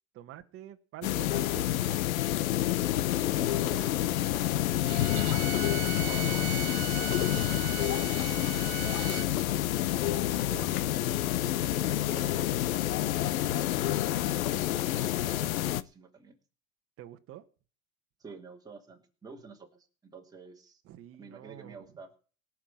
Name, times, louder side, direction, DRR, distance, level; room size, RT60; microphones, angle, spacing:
voice 1, 0.1-1.8 3.7-4.8 17.0-17.4 20.8-21.9, right 12 dB, 35° right, 7 dB, 1.5 m, -48 dB
sound 1, 1.0-15.8, left 13 dB, 85° left, 1.0 m, -28 dB
voice 2, 2.5-3.1 3.4-3.9 5.7-7.6 8.3-13.1 14.1-15.0 15.2-16.4 18.2-20.8 21.2-22.1, right 4 dB, 10° right, 0 dB, 3.2 m, -49 dB
Bowed string instrument, 4.8-9.3, right 15 dB, 55° right, 2.1 m, -39 dB
18.0 x 6.3 x 8.9 m, 0.39 s
supercardioid pair, 140°, 41 cm